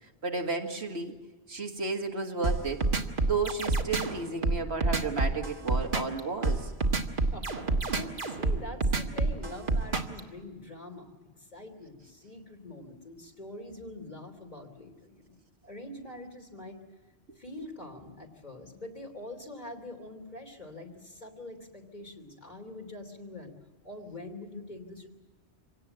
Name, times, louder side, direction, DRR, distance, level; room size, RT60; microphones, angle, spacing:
voice 1, 0.2-1.1 1.5-2.9 3.2-6.7, right 3 dB, 75° right, 3 dB, 2.1 m, -32 dB
sound 1, 2.4-10.2, right 3 dB, 50° right, 1.6 m, -27 dB
voice 2, 7.3-7.7 7.9-16.8 17.3-23.5 23.8-25.1, left 1 dB, 40° left, 3 dB, 3.2 m, -44 dB
26.0 x 17.5 x 8.8 m, 1.2 s
omnidirectional pair, 1.1 m